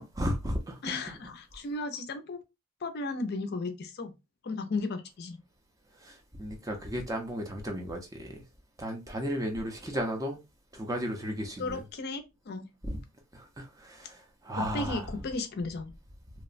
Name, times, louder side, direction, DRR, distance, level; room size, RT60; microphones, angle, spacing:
voice 1, 0.0-1.2 6.0-8.4 8.8-10.4 10.7-11.8 12.8-13.0 13.3-15.1, equal, 15° right, 0.4 m, -34 dB
voice 2, 0.8-2.4 2.8-4.1 4.4-5.4 11.6-12.7 14.7-15.9, left 3 dB, 45° left, 0.4 m, -35 dB
2.8 x 2.1 x 2.4 m
head